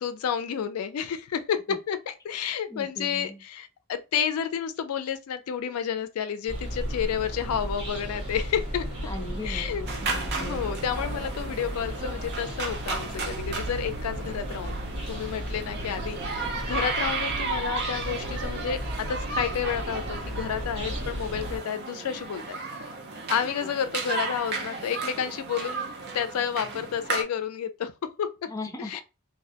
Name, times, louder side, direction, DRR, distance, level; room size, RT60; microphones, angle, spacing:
voice 1, 0.0-8.9 9.4-9.8 10.4-14.8 15.1-22.6 23.3-25.9 26.1-27.9 28.2-28.3 28.8-29.0, left 8 dB, 80° left, 0.4 m, -30 dB
voice 2, 2.7-3.4 9.1-10.9 28.5-29.0, left 2 dB, 15° left, 0.4 m, -39 dB
sound 1, 6.5-21.6, equal, 75° right, 1.1 m, -35 dB
sound 2, 9.9-27.2, right 3 dB, 50° right, 0.5 m, -34 dB
2.2 x 2.0 x 2.7 m
head